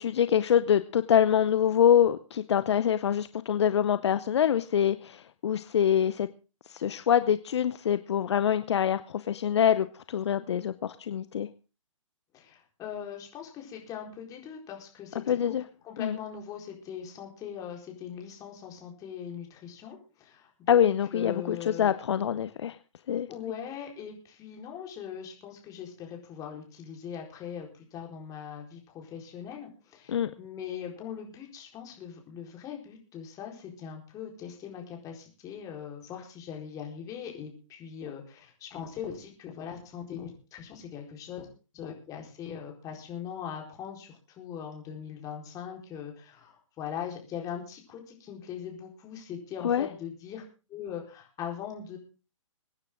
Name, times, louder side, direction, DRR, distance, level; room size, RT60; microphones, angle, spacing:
voice 1, 0.0-6.3 6.7-11.5 15.3-15.6 16.0-16.2 20.7-22.8 23.1-23.3 30.1-30.3 49.6-49.9, left 9 dB, 55° left, 13 dB, 0.8 m, -25 dB
voice 2, 12.3-15.6 15.8-21.9 23.3-41.5 41.7-50.4 50.7-52.0, left 8 dB, 20° left, 1 dB, 4.3 m, -41 dB
23.0 x 9.9 x 3.7 m, 0.33 s
figure-of-eight pair, 130°, 17 cm